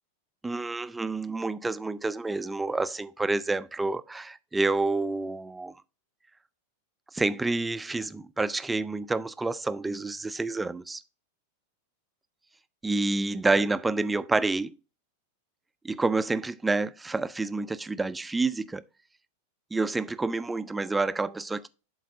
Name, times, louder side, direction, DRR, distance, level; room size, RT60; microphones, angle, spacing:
voice 1, 0.4-5.8 7.1-11.0 12.8-14.7 15.8-18.8 19.7-21.7, right 3 dB, 10° right, 0.4 m, -28 dB
11.5 x 4.0 x 2.6 m
figure-of-eight pair, 90°, 0 cm